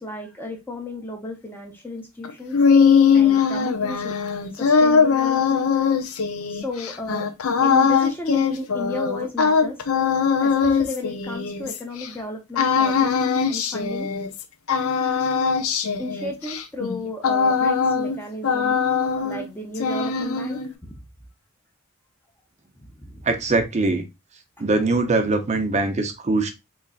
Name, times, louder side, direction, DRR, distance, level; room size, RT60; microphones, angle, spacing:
voice 1, 0.0-2.6 3.1-4.2 4.5-5.7 6.5-7.3 7.6-9.8 10.4-13.1 13.5-14.1 16.0-18.8 19.2-21.0 22.8-23.3 24.6-24.7, left 1 dB, 10° left, 0.6 m, -33 dB
sound 1, 2.2-12.1 12.5-14.4 14.7-18.2 18.4-19.5 19.7-20.7, left 6 dB, 75° left, 0.5 m, -21 dB
voice 2, 23.2-24.0 24.6-26.5, right 3 dB, 30° right, 0.5 m, -22 dB
3.9 x 3.2 x 2.3 m
head